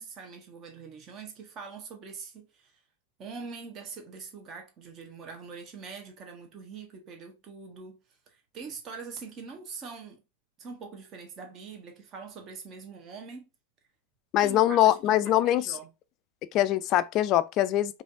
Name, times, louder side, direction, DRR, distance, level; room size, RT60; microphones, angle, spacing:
voice 1, 0.0-2.8 3.2-8.0 8.3-10.2 10.6-13.5 14.4-15.9, right 5 dB, 30° right, 1.1 m, -43 dB
voice 2, 14.3-15.7 16.5-18.0, left 13 dB, 35° left, 0.4 m, -23 dB
5.0 x 2.6 x 2.5 m
figure-of-eight pair, 90°, 0 cm